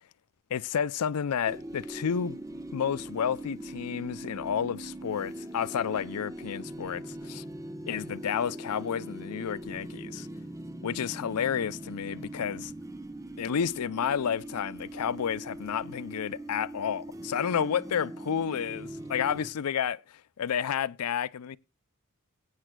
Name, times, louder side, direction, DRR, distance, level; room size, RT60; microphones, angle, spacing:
voice 1, 0.5-2.4 2.7-7.4 7.9-10.3 10.8-12.7 13.4-21.6, left 8 dB, 85° left, 0.4 m, -31 dB
sound 1, 1.5-19.5, right 1 dB, 15° right, 0.7 m, -41 dB
21.0 x 8.9 x 2.2 m
head